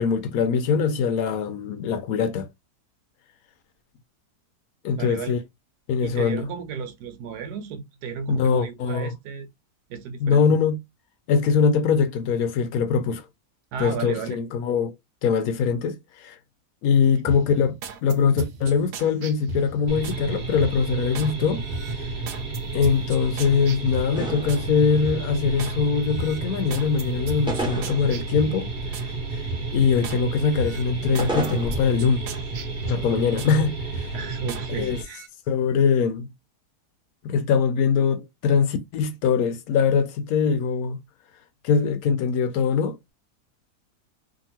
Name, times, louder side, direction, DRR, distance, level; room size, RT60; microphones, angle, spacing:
voice 1, 0.0-2.5 4.8-5.4 5.9-6.4 8.3-9.1 10.2-10.8 11.3-13.2 13.8-14.9 15.2-16.4 16.8-22.0 22.7-28.7 29.0-29.1 29.7-32.2 32.9-34.1 34.7-35.0 35.5-36.3 37.2-41.0 41.6-43.1, left 6 dB, 70° left, 1.0 m, -22 dB
voice 2, 4.9-5.3 6.0-9.5 9.9-10.5 13.7-14.4 34.1-35.2, right 6 dB, 85° right, 1.2 m, -33 dB
sound 1, 17.3-20.2 20.6-21.3 21.7-24.7 25.0-25.8 26.1-29.1 29.5-30.2 30.6-33.6 33.9-34.7 35.0-35.3, right 3 dB, 65° right, 1.0 m, -37 dB
sound 2, 19.9-35.0, right 3 dB, 40° right, 0.7 m, -32 dB
sound 3, 24.1-25.0 25.3-25.7 27.5-28.4 28.7-29.3 30.9-31.8, right 1 dB, 5° right, 0.6 m, -31 dB
2.7 x 2.7 x 2.7 m
omnidirectional pair, 1.7 m